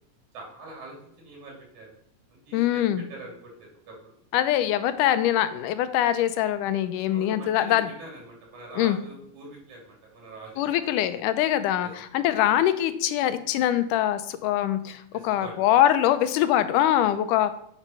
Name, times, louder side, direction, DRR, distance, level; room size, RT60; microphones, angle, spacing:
voice 1, 0.3-1.9 2.5-4.1 7.1-10.9 11.8-11.9 15.1-15.5 17.0-17.1, right 2 dB, 70° right, -2 dB, 4.3 m, -44 dB
voice 2, 2.5-3.0 4.3-7.9 8.8-9.0 10.6-17.6, left 12 dB, 85° left, 12 dB, 2.2 m, -23 dB
8.6 x 6.0 x 5.6 m, 0.70 s
omnidirectional pair, 3.6 m